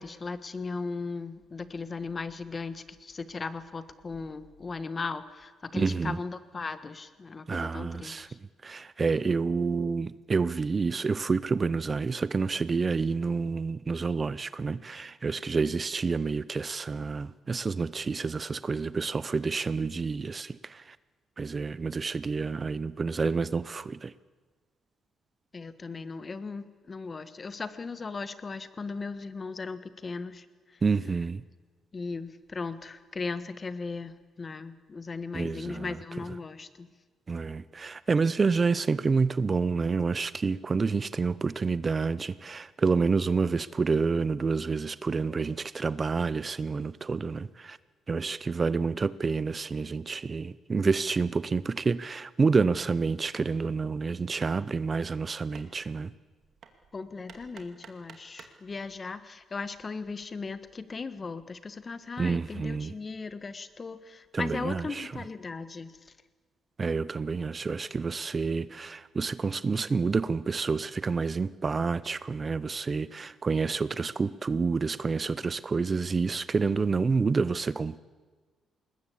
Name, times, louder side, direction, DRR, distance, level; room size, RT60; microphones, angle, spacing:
voice 1, 0.0-8.4 25.5-30.8 31.9-36.9 56.9-66.1, left 4 dB, 35° left, 1.4 m, -37 dB
voice 2, 5.7-6.2 7.5-8.3 8.6-21.0 21.4-24.1 30.8-31.4 35.3-36.0 37.3-47.8 48.1-56.1 62.2-62.9 64.3-65.1 66.8-78.0, right 4 dB, 35° right, 0.6 m, -28 dB
Hammer, 53.3-58.6, right 6 dB, 60° right, 2.3 m, -54 dB
20.5 x 20.0 x 8.5 m
cardioid pair, 90°, 0 cm